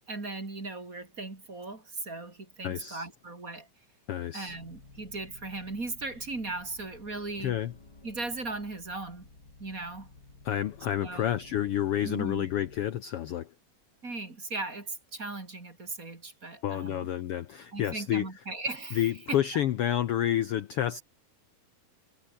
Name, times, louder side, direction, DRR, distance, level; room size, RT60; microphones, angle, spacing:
voice 1, 0.1-3.7 4.3-7.6 8.0-9.3 9.6-10.1 11.0-11.3 12.0-12.5 14.0-17.1 17.7-19.0 19.3-19.4, right 3 dB, 25° right, 3.5 m, -37 dB
voice 2, 2.6-3.1 4.1-4.6 7.4-7.7 10.4-13.5 16.6-18.3 18.9-21.0, left 11 dB, 80° left, 1.3 m, -29 dB
sound 1, 4.5-12.9, left 3 dB, 30° left, 5.5 m, -53 dB
omnidirectional pair, 3.8 m